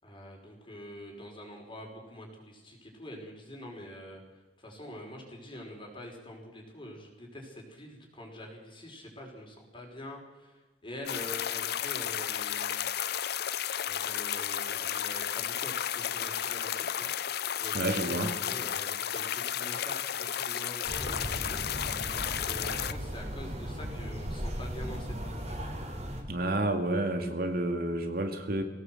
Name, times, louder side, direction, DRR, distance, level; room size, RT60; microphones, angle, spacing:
voice 1, 0.0-12.8 13.8-17.1 17.6-21.6 22.4-25.7, left 1 dB, 30° left, 1 dB, 5.3 m, -45 dB
sound 1, 11.1-22.9, left 10 dB, 65° left, 0.7 m, -33 dB
voice 2, 17.7-18.3 26.3-28.6, right 1 dB, 60° right, 5 dB, 2.2 m, -30 dB
sound 2, 20.9-26.2, equal, 40° right, 3.9 m, -37 dB
21.5 x 17.5 x 7.8 m, 1.2 s
head